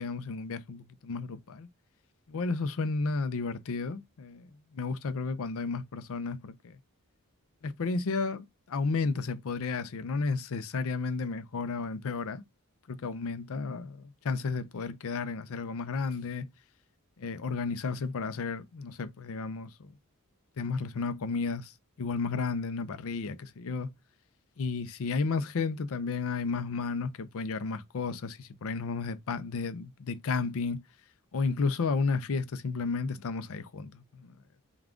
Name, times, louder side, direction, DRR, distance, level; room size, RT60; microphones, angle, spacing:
voice 1, 0.0-1.7 2.3-6.8 7.6-12.4 12.9-16.5 17.2-19.9 20.6-21.7 22.0-23.9 24.6-30.8 31.3-34.3, left 4 dB, 65° left, 0.5 m, -32 dB
3.6 x 2.3 x 3.5 m
head